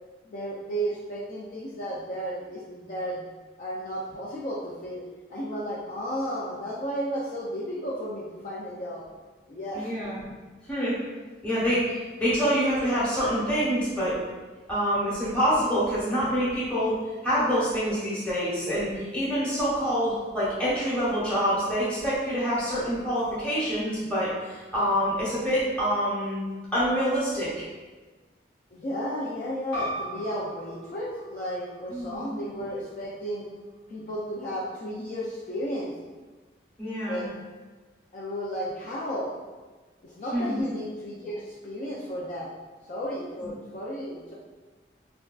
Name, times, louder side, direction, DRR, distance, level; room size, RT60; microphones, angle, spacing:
voice 1, 0.2-3.3 3.6-5.0 5.3-9.0 9.5-9.9 28.7-33.5 33.9-35.9 37.1-37.3 38.1-39.3 40.0-42.5 42.9-44.3, equal, 45° left, -6 dB, 0.3 m, -33 dB
voice 2, 9.7-10.2 10.7-11.0 11.4-14.2 14.7-26.4 26.7-27.6 31.9-32.3 36.8-37.2 40.3-40.6, equal, 5° left, -10 dB, 0.9 m, -26 dB
sound 1, 29.7-34.9, right 1 dB, 85° left, 1.2 m, -40 dB
3.4 x 2.2 x 2.3 m, 1.3 s
head